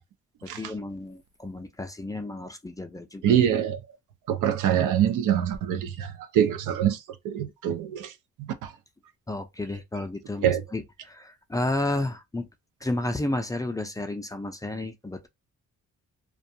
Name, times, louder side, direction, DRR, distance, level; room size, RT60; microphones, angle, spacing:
voice 1, 0.4-3.4 9.3-12.5 12.8-15.3, left 2 dB, 10° left, 0.4 m, -32 dB
voice 2, 3.2-3.8 4.3-8.1 8.4-8.7 10.4-10.6, right 10 dB, 85° right, 0.6 m, -25 dB
2.3 x 2.2 x 2.7 m
cardioid pair, 90°, 30 cm